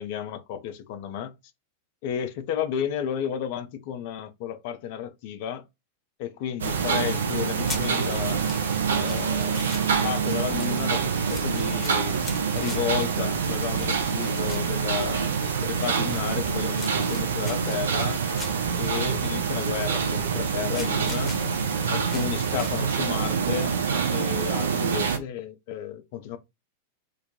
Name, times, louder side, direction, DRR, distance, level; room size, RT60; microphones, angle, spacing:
voice 1, 0.0-1.3 2.0-5.6 6.2-8.4 8.9-9.6 10.0-12.2 12.5-15.3 15.6-18.2 18.8-21.4 21.9-23.8 24.1-26.4, left 9 dB, 50° left, 0.4 m, -32 dB
sound 1, 6.6-25.2, right 6 dB, 65° right, 0.4 m, -26 dB
sound 2, 7.4-22.8, left 3 dB, 15° left, 0.8 m, -43 dB
2.2 x 2.1 x 2.6 m
figure-of-eight pair, 90°, 0 cm